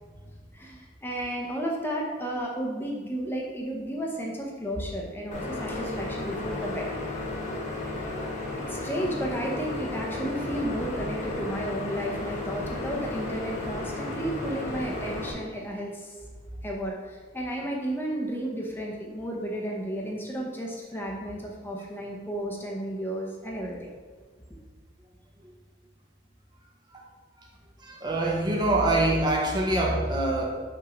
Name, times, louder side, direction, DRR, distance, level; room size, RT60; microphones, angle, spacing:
voice 1, 0.5-6.9 8.6-16.2 16.6-23.9, right 1 dB, 10° left, -2 dB, 0.8 m, -33 dB
sound 1, 5.3-15.3, left 2 dB, 45° left, 1.4 m, -33 dB
voice 2, 27.8-30.5, right 1 dB, 25° right, -1 dB, 0.8 m, -25 dB
5.7 x 3.6 x 5.2 m, 1.4 s
head